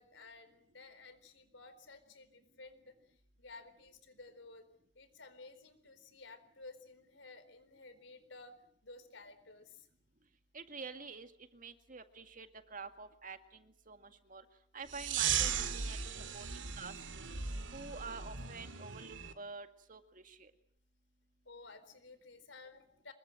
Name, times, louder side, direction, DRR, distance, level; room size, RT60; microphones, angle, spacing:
voice 1, 0.0-4.6 4.9-8.5 8.8-10.1 21.4-23.1, left 3 dB, 75° left, 11 dB, 4.3 m, -55 dB
voice 2, 10.5-14.4 14.7-16.0 16.3-16.5 16.8-17.3 17.7-20.5, right 4 dB, 45° right, 8 dB, 2.1 m, -48 dB
sound 1, 14.9-19.3, right 7 dB, 80° right, 2.4 m, -37 dB
25.5 x 22.5 x 7.8 m, 0.66 s
head